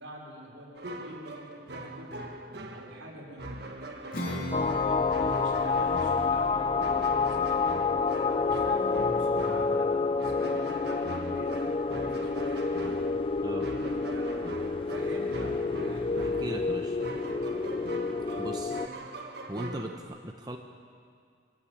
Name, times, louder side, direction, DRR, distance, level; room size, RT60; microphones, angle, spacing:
voice 1, 0.0-2.1 2.7-3.5 4.0-13.2 13.7-14.3 14.8-16.7 17.0-17.5 18.1-18.3, right 1 dB, 75° right, -3 dB, 5.7 m, -46 dB
sound 1, 0.7-20.0, right 1 dB, 55° right, 1.6 m, -41 dB
Acoustic guitar / Strum, 4.1-10.1, left 1 dB, 45° left, 3.4 m, -41 dB
sound 2, 4.5-18.9, left 4 dB, 25° left, 0.4 m, -28 dB
voice 2, 16.2-17.0 18.4-18.8 19.5-20.6, right 1 dB, 20° right, 3 dB, 1.0 m, -38 dB
23.0 x 16.0 x 8.7 m, 2.2 s
head